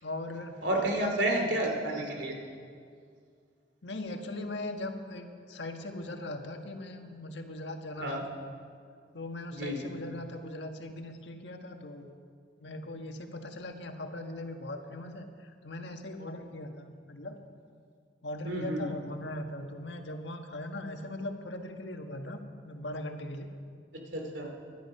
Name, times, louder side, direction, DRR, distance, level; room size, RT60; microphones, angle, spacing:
voice 1, 0.0-1.5 3.8-8.2 9.1-12.1 12.6-17.4 18.2-23.5, left 1 dB, 80° left, 4 dB, 1.5 m, -40 dB
voice 2, 0.6-2.4 8.0-8.2 9.5-9.9 18.4-18.9 24.1-24.5, right 1 dB, 85° right, 2 dB, 2.8 m, -30 dB
22.5 x 11.5 x 5.6 m, 2.2 s
head